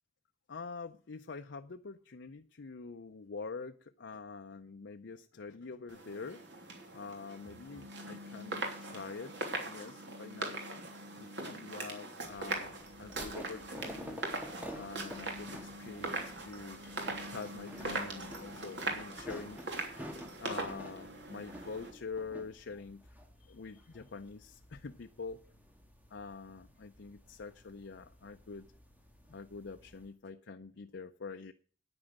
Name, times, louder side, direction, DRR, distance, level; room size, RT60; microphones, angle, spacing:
voice 1, 0.5-6.4 6.8-9.3 9.7-10.9 11.2-20.1 20.4-23.1 23.4-25.4 26.1-28.7 29.3-31.5, left 4 dB, 90° left, 0.6 m, -46 dB
sound 1, 5.9-21.9, right 2 dB, 80° right, 3.1 m, -41 dB
sound 2, 12.2-30.1, equal, 10° right, 1.7 m, -51 dB
9.8 x 9.6 x 6.5 m
head